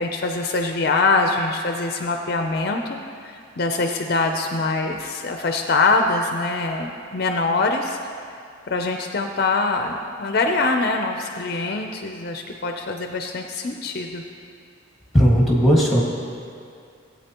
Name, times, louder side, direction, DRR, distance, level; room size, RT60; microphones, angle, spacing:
voice 1, 0.0-3.0 3.2-8.0 8.7-14.2, left 3 dB, 50° left, 4 dB, 0.5 m, -23 dB
voice 2, 15.1-16.0, equal, ahead, -3 dB, 1.6 m, -16 dB
17.5 x 8.3 x 2.9 m, 2.3 s
head